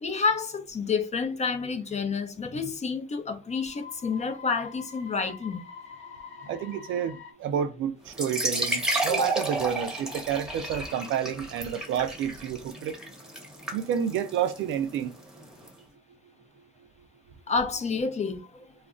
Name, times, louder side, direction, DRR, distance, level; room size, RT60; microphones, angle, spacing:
voice 1, 0.0-5.6 9.1-9.3 17.5-18.7, left 4 dB, 35° left, 0.6 m, -29 dB
sound 1, 3.4-7.3, left 6 dB, 70° left, 0.8 m, -46 dB
voice 2, 6.5-13.0 13.7-15.1, right 9 dB, 75° right, 0.5 m, -30 dB
sound 2, 8.1-15.7, right 1 dB, 5° right, 1.0 m, -32 dB
2.4 x 2.1 x 3.7 m
cardioid pair, 90°, 20 cm